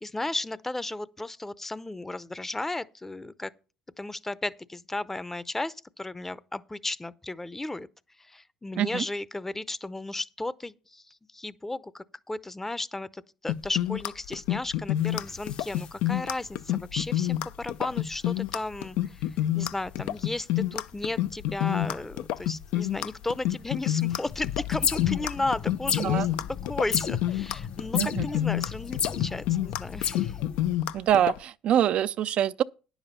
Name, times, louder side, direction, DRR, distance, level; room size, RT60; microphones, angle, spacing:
voice 1, 0.0-3.5 4.0-7.9 8.2-26.3 26.6-30.4, left 2 dB, 10° left, 0.6 m, -34 dB
sound 1, 13.5-31.4, left 13 dB, 75° left, 0.5 m, -28 dB
sound 2, 15.0-17.3 17.6-17.7 18.0-18.1 18.3-18.7 19.0-20.4 20.7-23.7 24.0-30.8, left 8 dB, 50° left, 0.8 m, -34 dB
voice 2, 30.9-32.6, right 11 dB, 55° right, 0.4 m, -25 dB
9.9 x 7.0 x 5.5 m
supercardioid pair, 85°, 2 cm